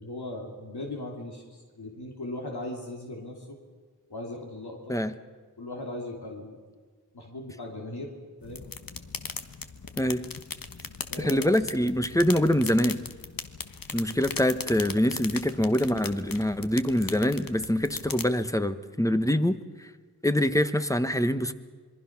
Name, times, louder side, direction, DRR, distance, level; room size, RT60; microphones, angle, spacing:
voice 1, 0.0-3.6 4.1-5.0 5.6-6.6 7.1-8.1 8.4-8.7 11.1-11.5 14.0-14.1, left 1 dB, 80° left, -1 dB, 2.9 m, -38 dB
sound 1, 8.4-18.2, left 5 dB, 60° left, 1.3 m, -39 dB
voice 2, 11.2-13.0 13.9-19.6 20.2-21.5, left 1 dB, 10° left, 11 dB, 1.2 m, -25 dB
27.0 x 22.0 x 6.0 m, 1.5 s
wide cardioid pair, 55°, 38 cm